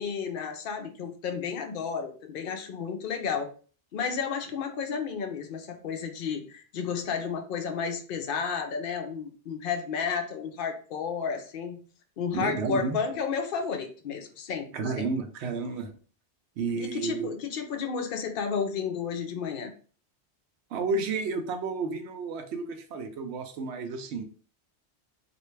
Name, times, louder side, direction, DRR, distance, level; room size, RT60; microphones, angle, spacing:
voice 1, 0.0-3.5 3.9-11.8 12.2-14.7 14.9-15.1 16.8-19.7, left 6 dB, 55° left, 5 dB, 0.7 m, -32 dB
voice 2, 12.3-13.0 14.7-15.9 16.6-17.3 20.7-24.2, right 4 dB, 75° right, 6 dB, 0.8 m, -31 dB
3.3 x 2.6 x 3.1 m, 0.41 s
omnidirectional pair, 1.2 m